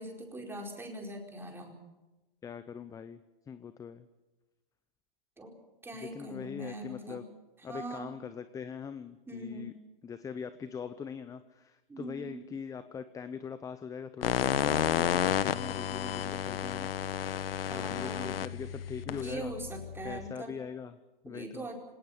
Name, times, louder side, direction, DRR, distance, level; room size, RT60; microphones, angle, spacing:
voice 1, 0.0-1.7 5.4-5.5 5.8-7.2 7.7-8.1 9.3-9.8 11.9-12.3 17.7-18.4 19.0-20.5 21.2-21.8, right 1 dB, 10° right, 1 dB, 4.6 m, -42 dB
voice 2, 2.4-3.2 3.5-4.1 5.9-7.3 7.6-9.7 10.0-16.9 17.7-19.5 20.0-21.0 21.2-21.7, left 6 dB, 10° left, 12 dB, 0.7 m, -42 dB
sound 1, 14.2-20.3, left 10 dB, 75° left, 1.1 m, -32 dB
25.5 x 18.0 x 7.4 m, 1.1 s
hypercardioid pair, 140°, 29 cm